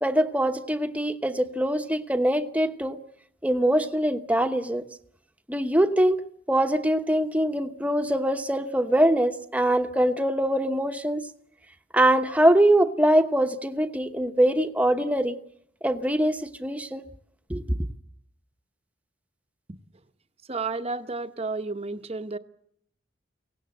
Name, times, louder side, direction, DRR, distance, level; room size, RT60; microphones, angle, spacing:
voice 1, 0.0-3.0 3.4-4.8 5.5-6.2 6.5-11.2 11.9-15.4 15.8-17.0 17.5-17.8, right 1 dB, 5° right, 1.0 m, -23 dB
voice 2, 20.5-22.4, right 3 dB, 30° right, 0.9 m, -31 dB
24.0 x 18.0 x 7.8 m
head